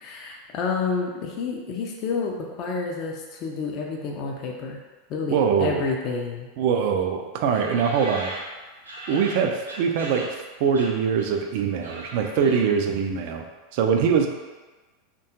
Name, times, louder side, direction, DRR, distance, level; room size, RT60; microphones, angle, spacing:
voice 1, 0.0-4.8 5.1-6.5, left 4 dB, 40° left, 0 dB, 0.4 m, -29 dB
voice 2, 5.3-5.9 6.6-8.3 9.1-10.3 10.6-13.5 13.7-14.3, right 6 dB, 50° right, 4 dB, 0.3 m, -23 dB
sound 1, 7.5-10.4 10.7-11.5 11.7-12.9, right 1 dB, 85° right, 0.7 m, -38 dB
3.4 x 2.2 x 2.7 m, 1.2 s
figure-of-eight pair, 85°, 0 cm